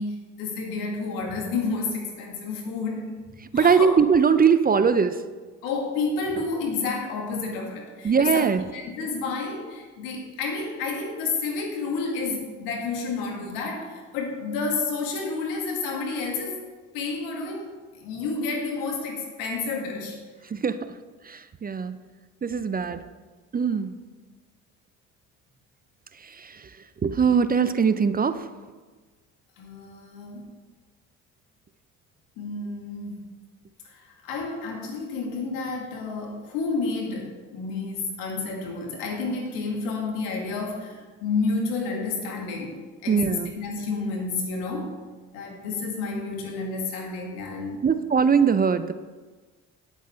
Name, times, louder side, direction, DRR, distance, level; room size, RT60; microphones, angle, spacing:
voice 1, 0.0-3.1 3.5-3.9 5.6-8.5 8.7-16.6 16.9-20.2 23.7-23.9 29.6-30.4 32.4-33.2 33.8-42.8 43.0-44.9 45.3-47.8, left 4 dB, 80° left, 1 dB, 2.0 m, -30 dB
voice 2, 3.5-5.2 8.0-8.6 20.5-20.8 21.3-22.0 22.4-23.0 23.5-23.9 26.2-26.7 27.0-28.5 43.1-43.5 47.8-48.9, right 6 dB, 25° right, 12 dB, 0.6 m, -21 dB
9.4 x 8.1 x 4.3 m, 1.4 s
hypercardioid pair, 60°, 33 cm